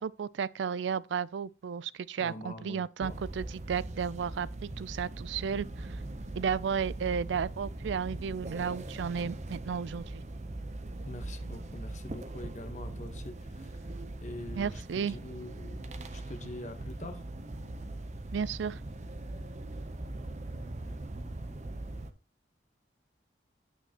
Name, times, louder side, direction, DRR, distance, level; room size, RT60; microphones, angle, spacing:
voice 1, 0.0-6.0 6.3-10.2 14.6-15.2 18.3-18.8, right 6 dB, 80° right, 0.4 m, -33 dB
voice 2, 2.2-3.2 11.0-13.9 14.2-15.8 16.1-17.3, left 1 dB, 40° left, 1.1 m, -44 dB
sound 1, 3.0-22.1, right 2 dB, 40° right, 0.7 m, -41 dB
9.1 x 8.1 x 2.9 m
head